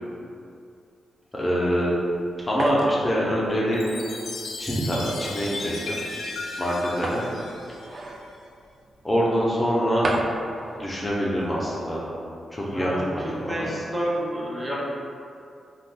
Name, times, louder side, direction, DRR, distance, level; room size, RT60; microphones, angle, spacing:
voice 1, 1.3-1.9 2.5-3.9 4.6-6.0 6.6-7.2 9.0-10.1 10.8-12.1 12.5-13.5, equal, 25° left, -5 dB, 0.6 m, -25 dB
Glass on Table Movement, 2.0-12.1, right 2 dB, 60° right, 0.3 m, -37 dB
Chime, 3.7-8.3, left 3 dB, 80° left, 0.4 m, -36 dB
voice 2, 12.6-14.7, equal, 25° right, -6 dB, 0.9 m, -29 dB
2.6 x 2.3 x 3.7 m, 2.5 s
supercardioid pair, 55°, 0 cm